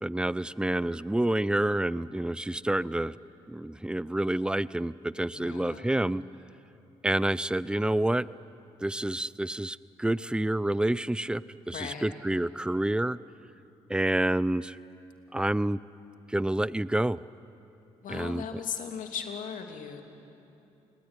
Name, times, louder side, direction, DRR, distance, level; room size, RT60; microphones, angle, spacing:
voice 1, 0.0-3.2 3.5-6.2 7.0-8.3 8.8-13.2 13.9-14.8 15.3-15.8 16.3-17.2 18.1-18.6, right 1 dB, 5° right, 19 dB, 0.6 m, -28 dB
voice 2, 5.3-6.0 11.7-12.1 18.0-20.0, left 7 dB, 65° left, 4 dB, 2.9 m, -37 dB
29.0 x 20.0 x 9.9 m, 2.8 s
hypercardioid pair, 55°, 14 cm